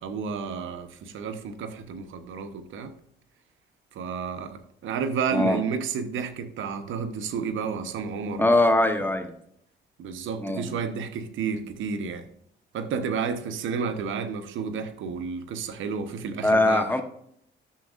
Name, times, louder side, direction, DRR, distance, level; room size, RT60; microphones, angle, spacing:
voice 1, 0.0-2.9 3.9-8.5 10.0-12.2 12.7-16.9, right 6 dB, 80° right, 1.0 m, -31 dB
voice 2, 8.4-9.3 10.4-10.8 16.4-17.0, left 2 dB, 10° left, 1.1 m, -22 dB
11.5 x 7.1 x 2.5 m
cardioid pair, 90°, 20 cm